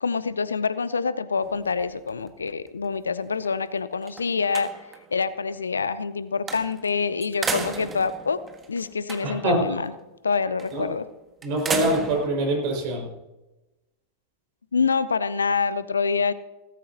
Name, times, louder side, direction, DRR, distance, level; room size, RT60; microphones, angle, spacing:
voice 1, 0.0-4.7 5.1-8.4 8.7-9.9 10.2-11.0 14.7-16.3, left 5 dB, 75° left, 16 dB, 0.6 m, -26 dB
sound 1, 1.4-3.0 3.5-3.6 3.9-5.1 6.5-6.9 7.2-9.5 10.6-10.9 11.4-12.3, right 4 dB, 20° right, 1.7 m, -34 dB
voice 2, 9.2-9.8 10.7-10.9 11.4-13.1, right 1 dB, 45° right, 1 dB, 5.7 m, -24 dB
18.0 x 14.5 x 2.9 m, 1.0 s
figure-of-eight pair, 90°, 0 cm